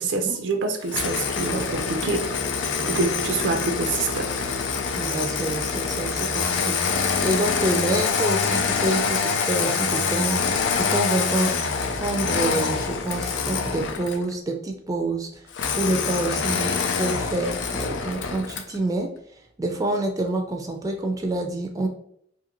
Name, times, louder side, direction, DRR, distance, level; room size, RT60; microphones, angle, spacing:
voice 1, 0.0-2.3 2.8-4.3, right 3 dB, 90° right, 6 dB, 0.4 m, -26 dB
Engine starting, 0.9-14.3 15.5-18.8, left 5 dB, 90° left, 0.4 m, -25 dB
voice 2, 5.0-6.8 7.2-11.5 11.9-15.5 15.7-16.7 17.0-19.1 19.6-21.9, right 2 dB, 20° right, 3 dB, 0.3 m, -27 dB
2.5 x 2.5 x 2.9 m, 0.68 s
head